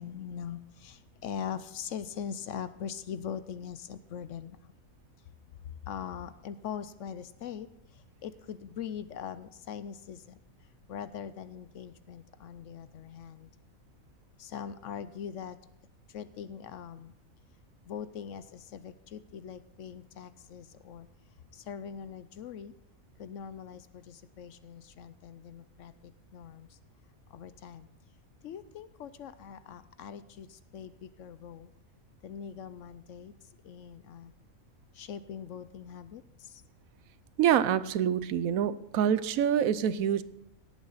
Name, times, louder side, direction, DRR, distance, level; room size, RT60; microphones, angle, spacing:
voice 1, 0.0-4.6 5.9-7.7 8.2-10.4 10.9-13.5 14.4-15.6 16.1-17.1 17.9-21.1 21.7-22.7 23.2-25.9 26.3-26.7 27.3-27.9 28.4-31.7 32.2-33.3 33.6-34.3 35.0-36.2, left 8 dB, 65° left, 14 dB, 0.9 m, -41 dB
voice 2, 37.4-40.2, right 9 dB, 80° right, 15 dB, 1.0 m, -26 dB
17.5 x 8.4 x 4.1 m, 0.81 s
omnidirectional pair, 1.5 m